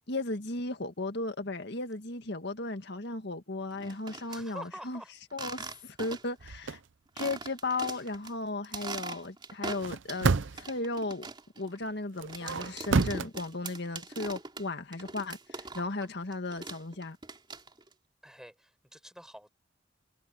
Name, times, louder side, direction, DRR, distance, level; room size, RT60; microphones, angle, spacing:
voice 1, 0.1-5.0 5.3-6.8 7.2-11.3 11.6-17.2, left 2 dB, 60° left, 1.9 m, -35 dB
sound 1, 3.7-4.4 5.3-6.4 6.7-6.8 7.2-8.3 8.6-10.3 10.6-16.1 16.3-17.9, right 3 dB, 25° right, 3.0 m, -42 dB
voice 2, 4.3-5.1 7.8-8.0 18.2-19.5, equal, 5° right, 4.9 m, -47 dB
sound 2, 6.4-6.8 9.7-10.8 12.2-13.3, right 4 dB, 80° right, 0.7 m, -29 dB
head